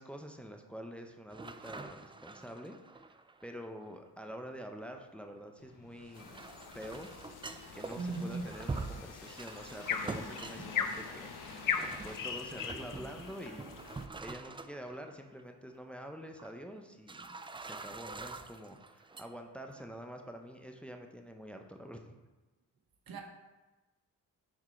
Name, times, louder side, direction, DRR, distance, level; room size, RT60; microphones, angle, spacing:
voice 1, 0.0-2.8 3.4-7.1 7.7-11.5 12.0-13.8 14.2-22.2, equal, 5° left, 4 dB, 0.7 m, -47 dB
sound 1, 1.3-3.9 6.0-15.1 15.4-15.5 16.4-16.5 17.1-19.3 19.6-20.0, right 3 dB, 15° right, 0.3 m, -45 dB
sound 2, 5.6-13.9 14.3-14.4, left 4 dB, 65° left, 1.1 m, -51 dB
sound 3, 6.1-14.1, left 7 dB, 50° left, 0.6 m, -40 dB
voice 2, 8.0-8.4 23.1-23.2, right 3 dB, 55° right, 3 dB, 1.2 m, -37 dB
6.3 x 4.3 x 4.4 m, 1.1 s
supercardioid pair, 50°, 41 cm